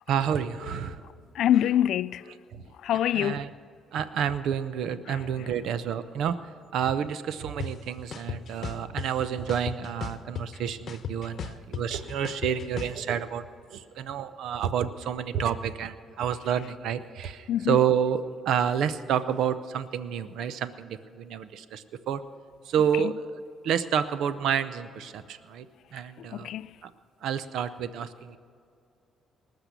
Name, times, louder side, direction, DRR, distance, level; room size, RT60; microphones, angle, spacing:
voice 1, 0.1-1.0 2.5-2.6 3.1-3.5 3.9-6.4 6.7-13.4 13.7-22.2 22.7-23.1 23.6-25.7 25.9-26.5 26.8-26.9 27.2-28.4, right 8 dB, 80° right, 0.6 m, -29 dB
voice 2, 1.3-2.3 2.8-3.5 5.1-5.5 17.5-17.8 22.9-23.1 26.2-26.7, left 11 dB, 80° left, 0.3 m, -26 dB
sound 1, 7.6-7.7 8.1-9.1 9.5-10.6 10.9-13.0, left 6 dB, 60° left, 0.9 m, -35 dB
19.5 x 6.7 x 8.2 m
cardioid pair, 90°, 0 cm